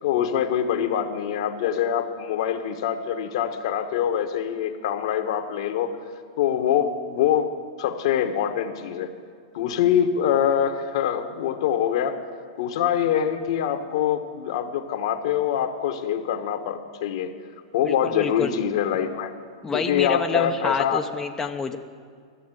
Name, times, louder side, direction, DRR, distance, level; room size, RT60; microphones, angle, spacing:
voice 1, 0.0-6.0 6.4-9.1 9.5-12.2 12.6-17.3 17.7-19.3 19.7-21.0, left 9 dB, 60° left, 7 dB, 1.2 m, -24 dB
voice 2, 17.8-18.5 19.6-21.8, left 4 dB, 15° left, 4 dB, 0.7 m, -28 dB
12.5 x 7.2 x 9.0 m, 2.1 s
hypercardioid pair, 115°, 3 cm